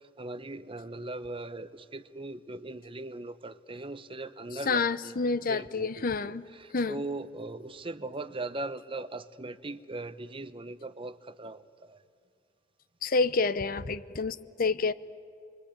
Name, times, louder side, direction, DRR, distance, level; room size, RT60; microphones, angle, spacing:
voice 1, 0.2-4.9 5.5-12.0, right 2 dB, 30° right, 0.8 m, -39 dB
voice 2, 4.7-6.4 6.7-7.0 13.0-14.9, left 4 dB, 50° left, 0.8 m, -28 dB
29.5 x 22.5 x 8.8 m
head